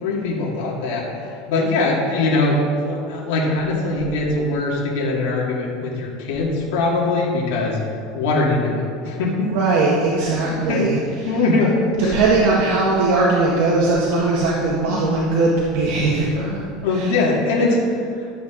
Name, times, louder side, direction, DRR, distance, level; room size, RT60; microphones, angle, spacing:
voice 1, 0.0-7.8 8.1-9.6 10.3-10.9 11.2-12.2 14.9-15.0 16.4-16.5 16.8-18.0, left 2 dB, 70° left, -4 dB, 2.3 m, -21 dB
voice 2, 9.5-11.3 12.1-16.6 16.9-17.1, right 3 dB, 60° right, -5 dB, 1.7 m, -19 dB
13.0 x 8.0 x 3.9 m, 2.5 s
supercardioid pair, 150°, 0 cm